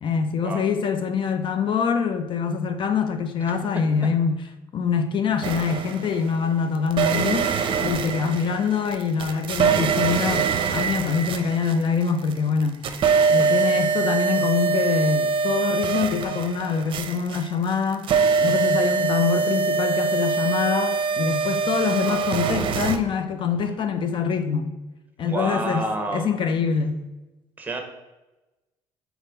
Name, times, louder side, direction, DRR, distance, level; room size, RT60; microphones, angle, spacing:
voice 1, 0.0-4.4 4.7-12.8 13.3-18.1 18.4-24.7 25.2-25.8 26.1-27.0, left 6 dB, 50° left, 0.6 m, -24 dB
sound 1, 5.4-6.3 6.9-12.3 12.6-23.0, right 5 dB, 50° right, 0.7 m, -23 dB
voice 2, 25.2-26.3 27.6-27.8, right 2 dB, 15° right, 1.3 m, -29 dB
4.5 x 4.4 x 5.0 m
supercardioid pair, 90°, 11 cm